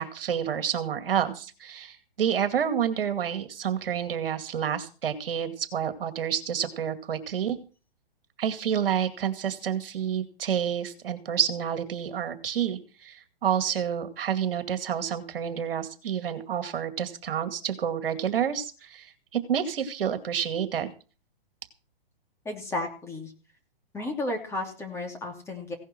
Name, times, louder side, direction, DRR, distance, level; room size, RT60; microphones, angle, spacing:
voice 1, 0.0-7.6 8.4-20.9, right 8 dB, 65° right, 9 dB, 2.3 m, -29 dB
voice 2, 22.4-23.3 23.9-25.7, left 2 dB, 10° left, 2 dB, 2.9 m, -33 dB
16.5 x 11.0 x 4.6 m, 0.36 s
hypercardioid pair, 140°, 30 cm